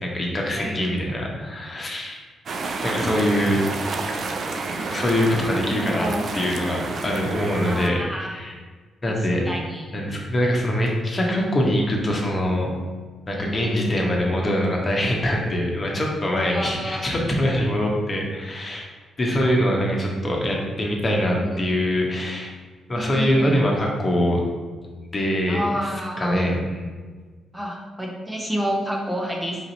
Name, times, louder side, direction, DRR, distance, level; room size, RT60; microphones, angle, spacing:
voice 1, 0.0-2.2 2.8-3.6 4.7-8.5 9.0-9.4 9.9-12.7 13.3-18.9 19.2-22.5 22.9-24.4 25.1-25.6 26.2-26.9, equal, 35° left, -1 dB, 1.0 m, -23 dB
sound 1, 2.5-7.9, right 3 dB, 55° right, 0.5 m, -29 dB
voice 2, 5.8-6.2 7.6-8.3 9.0-9.9 13.3-13.9 16.5-17.1 21.4-21.5 22.9-23.6 25.5-26.4 27.5-29.6, equal, 10° right, -1 dB, 0.8 m, -29 dB
4.3 x 2.7 x 3.9 m, 1.4 s
supercardioid pair, 55°, 0 cm